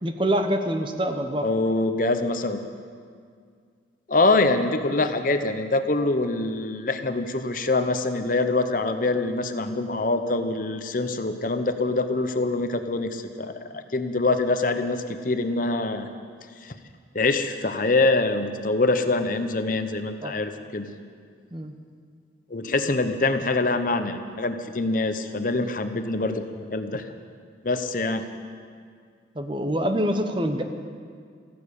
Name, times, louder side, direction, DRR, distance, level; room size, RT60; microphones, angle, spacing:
voice 1, 0.0-1.5 20.2-20.3 21.5-21.7 29.3-30.6, equal, 25° right, 6 dB, 0.9 m, -25 dB
voice 2, 1.4-2.6 4.1-16.1 16.6-16.7 17.1-20.9 22.5-27.0 27.6-28.3, left 2 dB, 45° left, 8 dB, 0.8 m, -24 dB
14.5 x 11.5 x 8.5 m, 2.1 s
head